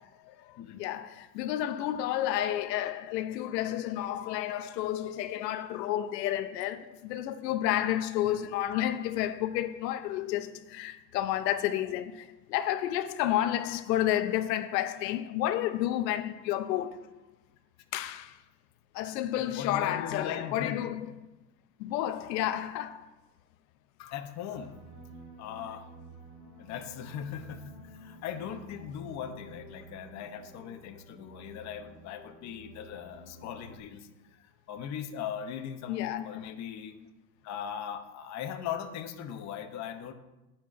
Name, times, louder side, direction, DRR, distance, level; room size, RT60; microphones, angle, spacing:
voice 1, 0.0-17.1 17.9-18.4 18.9-21.1 21.8-23.1 35.9-36.4, left 12 dB, 85° left, 0.8 m, -31 dB
voice 2, 19.3-20.8 24.0-24.7 25.4-25.8 26.6-37.1 37.4-40.1, left 8 dB, 35° left, 0.9 m, -39 dB
sound 1, 24.6-33.8, right 1 dB, 15° left, 2.5 m, -51 dB
10.0 x 4.5 x 7.5 m
supercardioid pair, 140°, 48 cm